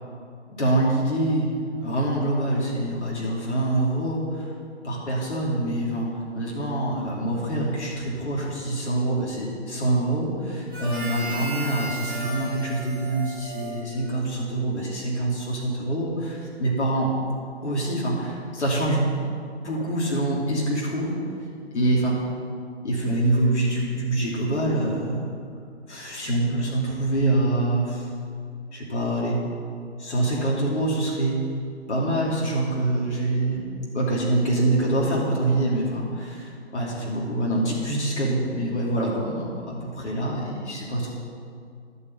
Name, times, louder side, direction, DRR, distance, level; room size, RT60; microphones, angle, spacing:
voice 1, 0.5-1.5 1.8-4.5 4.8-17.1 17.6-19.2 19.6-21.2 21.7-22.2 22.8-25.2 25.9-28.1 28.7-29.4 30.0-31.4 31.9-33.7 33.9-41.1, right 1 dB, 80° left, -4 dB, 3.1 m, -25 dB
Harmonica, 10.7-14.5, right 3 dB, 10° right, 0.4 m, -35 dB
11.5 x 5.6 x 8.5 m, 2.3 s
hypercardioid pair, 150°, 34 cm